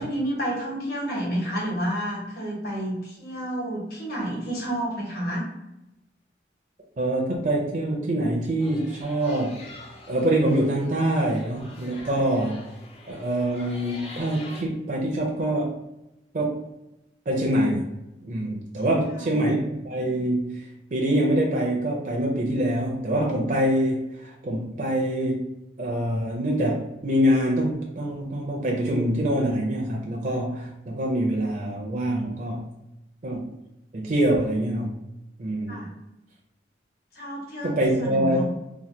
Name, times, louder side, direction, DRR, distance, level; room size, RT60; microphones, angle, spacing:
voice 1, 0.0-5.4 12.0-12.2 18.8-19.5 35.7-35.9 37.1-38.5, right 1 dB, 55° left, -5 dB, 1.2 m, -30 dB
voice 2, 7.0-9.6 10.1-12.6 13.1-15.8 16.3-16.6 17.3-17.9 18.2-19.6 19.8-20.6 20.9-25.5 25.8-32.7 33.2-33.5 33.9-35.0 35.4-35.8 37.6-38.5, right 1 dB, 45° right, -1 dB, 0.5 m, -25 dB
sound 1, 8.6-14.6, left 2 dB, 35° left, 0.5 m, -45 dB
2.8 x 2.1 x 3.2 m, 0.92 s
head